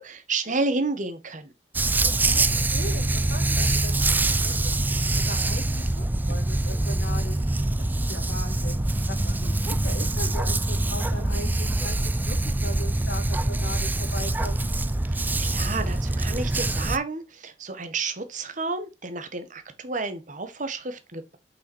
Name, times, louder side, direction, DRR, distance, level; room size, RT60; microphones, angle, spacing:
voice 1, 0.0-1.5 15.1-21.4, right 3 dB, 45° right, 1.6 m, -31 dB
Dog, 1.7-17.0, right 2 dB, 10° right, 0.4 m, -24 dB
voice 2, 2.1-3.9 4.2-14.6, left 1 dB, 75° left, 3.5 m, -39 dB
6.9 x 6.0 x 4.6 m
head